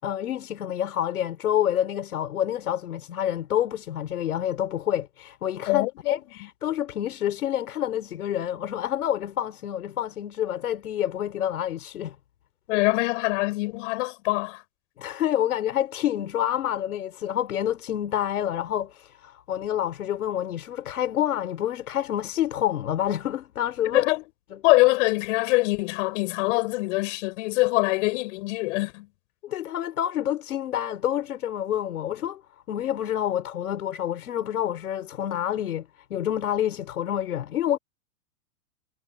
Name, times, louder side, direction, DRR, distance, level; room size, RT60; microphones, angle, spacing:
voice 1, 0.0-12.2 15.0-24.1 29.4-32.4 32.7-37.8, left 11 dB, 80° left, 4.3 m, -28 dB
voice 2, 5.7-6.1 12.7-14.6 23.8-24.2 24.6-29.1, left 22 dB, 55° left, 8.0 m, -24 dB
hypercardioid pair, 130°, 43 cm